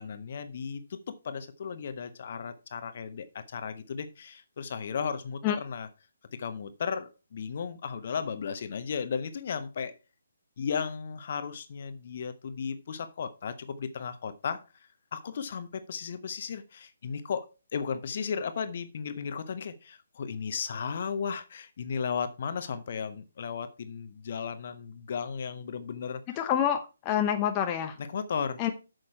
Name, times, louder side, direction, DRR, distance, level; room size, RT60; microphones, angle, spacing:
voice 1, 0.0-5.9 6.3-9.9 10.6-14.6 15.1-26.2 28.0-28.6, left 6 dB, 45° left, 11 dB, 1.0 m, -35 dB
voice 2, 26.4-28.0 28.6-28.7, left 10 dB, 25° left, 6 dB, 0.8 m, -27 dB
8.5 x 6.5 x 4.7 m, 0.31 s
figure-of-eight pair, 140°, 0 cm